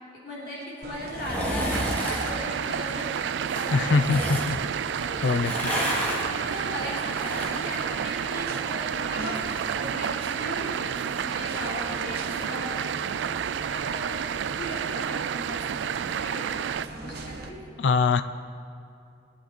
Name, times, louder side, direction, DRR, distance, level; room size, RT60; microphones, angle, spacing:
voice 1, 0.2-4.3 5.0-5.8 6.4-9.4 9.7-10.9 11.2-14.3 14.6-17.6, equal, 65° left, -6 dB, 3.4 m, -38 dB
sound 1, 0.8-17.5, right 2 dB, 60° right, 1.3 m, -41 dB
sound 2, 1.1-2.3 3.4-4.5 5.3-8.7 9.0-12.4 12.8-12.9, equal, 10° left, 3.0 m, -33 dB
sound 3, 1.7-16.9, right 8 dB, 80° right, 0.3 m, -30 dB
voice 2, 3.7-4.6 5.2-5.5 17.8-18.2, left 4 dB, 80° left, 10 dB, 0.5 m, -22 dB
22.0 x 10.0 x 4.6 m, 2.7 s
head